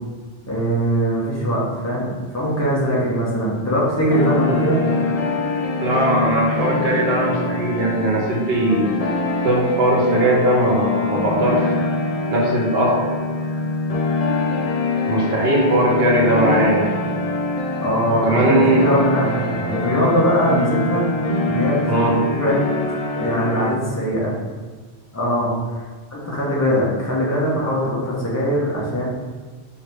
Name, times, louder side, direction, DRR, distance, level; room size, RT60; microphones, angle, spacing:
voice 1, 0.5-4.8 17.8-21.0 21.5-22.6 23.1-24.4 25.1-25.8 26.1-29.0, equal, 15° left, -5 dB, 1.0 m, -21 dB
sound 1, 4.1-23.7, left 3 dB, 50° left, 0.4 m, -24 dB
voice 2, 5.8-8.9 9.4-11.8 12.3-13.0 15.1-17.0 18.2-18.9 21.9-22.2, right 1 dB, 60° right, -2 dB, 1.2 m, -19 dB
4.7 x 2.9 x 3.4 m, 1.4 s
omnidirectional pair, 1.2 m